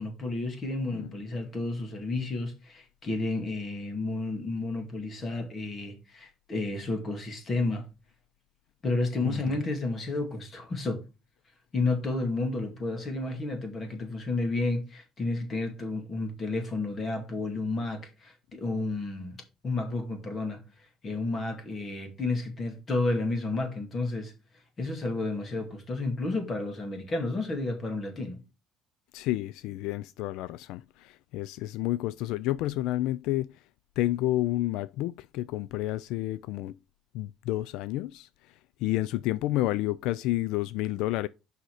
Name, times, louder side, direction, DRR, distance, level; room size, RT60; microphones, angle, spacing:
voice 1, 0.0-7.9 8.8-11.0 11.7-20.6 21.0-24.3 24.8-28.4, left 2 dB, 30° left, 2.3 m, -31 dB
voice 2, 9.2-9.6 29.1-33.5 34.0-36.8 37.1-38.3 38.8-41.3, left 16 dB, 80° left, 0.3 m, -30 dB
6.4 x 5.6 x 4.9 m
cardioid pair, 135°, 0 cm